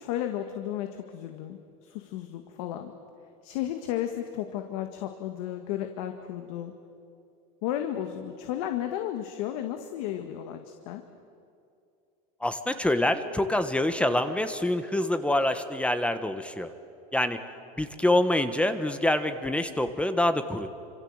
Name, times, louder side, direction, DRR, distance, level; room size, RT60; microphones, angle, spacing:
voice 1, 0.0-2.9 3.4-6.7 7.6-11.0, left 11 dB, 75° left, 6 dB, 1.9 m, -33 dB
voice 2, 12.4-16.7 17.1-17.4 17.8-20.7, left 1 dB, 5° left, 10 dB, 1.3 m, -26 dB
27.0 x 26.5 x 8.1 m, 2.5 s
supercardioid pair, 135°, 19 cm